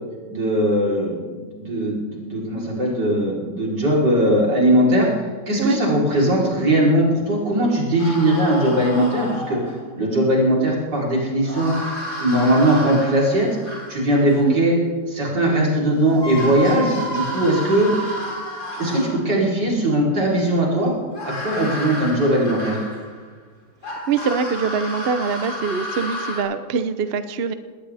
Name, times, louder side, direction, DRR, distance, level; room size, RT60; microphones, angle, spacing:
voice 1, 0.3-11.7 12.2-13.5 13.9-14.8 15.1-17.9 18.7-20.9 21.2-22.8, right 1 dB, 70° right, -4 dB, 4.5 m, -19 dB
sound 1, 8.0-9.9 11.4-14.4 15.7-15.8 16.1-19.4 21.1-23.2 23.8-26.4, equal, 60° left, 4.6 m, -31 dB
voice 2, 24.1-27.5, right 6 dB, 50° right, 10 dB, 0.7 m, -23 dB
20.0 x 18.0 x 3.5 m, 1.5 s
omnidirectional pair, 1.9 m